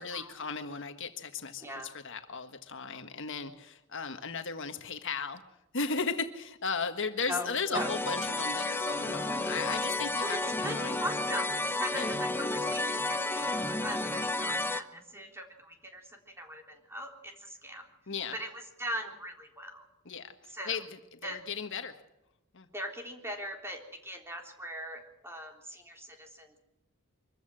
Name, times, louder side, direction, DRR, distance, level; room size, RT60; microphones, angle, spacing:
voice 1, 0.0-5.4 5.7-11.0 11.9-12.2 18.1-18.4 20.0-22.0 22.5-22.7, left 5 dB, 60° left, 7 dB, 1.6 m, -36 dB
voice 2, 1.6-1.9 7.3-7.9 10.2-17.9 18.3-19.9 20.5-20.8 21.2-21.4 22.7-26.6, equal, 10° right, 3 dB, 3.6 m, -40 dB
sound 1, 7.7-14.8, left 2 dB, 10° left, 1.0 m, -32 dB
24.0 x 14.5 x 7.6 m, 0.91 s
head